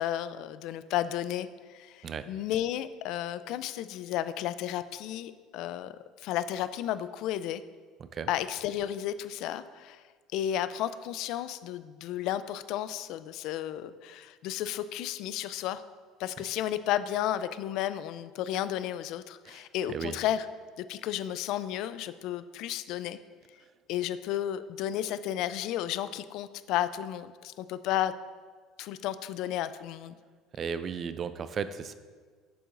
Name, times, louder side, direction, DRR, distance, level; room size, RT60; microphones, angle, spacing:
voice 1, 0.0-5.9 6.2-7.6 8.3-10.0 10.3-15.8 16.2-20.5 20.8-23.2 23.9-28.1 28.8-30.1, left 12 dB, 65° left, 14 dB, 0.3 m, -33 dB
voice 2, 30.5-31.9, right 6 dB, 35° right, 12 dB, 0.4 m, -35 dB
8.4 x 6.9 x 2.5 m, 1.5 s
cardioid pair, 120°, 0 cm